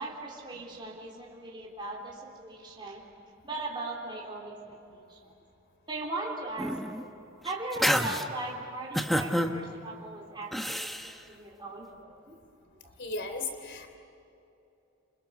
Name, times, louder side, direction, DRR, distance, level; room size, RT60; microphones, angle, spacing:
voice 1, 0.0-3.0 3.4-5.3 5.9-7.1 7.4-12.4 12.8-12.9, right 2 dB, 25° right, -3 dB, 3.7 m, -39 dB
sound 1, 6.6-7.0 7.5-8.3 8.9-9.5 10.5-11.1, equal, ahead, 1.2 m, -28 dB
voice 2, 13.0-14.0, left 3 dB, 60° left, 7 dB, 3.5 m, -36 dB
29.0 x 28.0 x 7.1 m, 2.8 s
head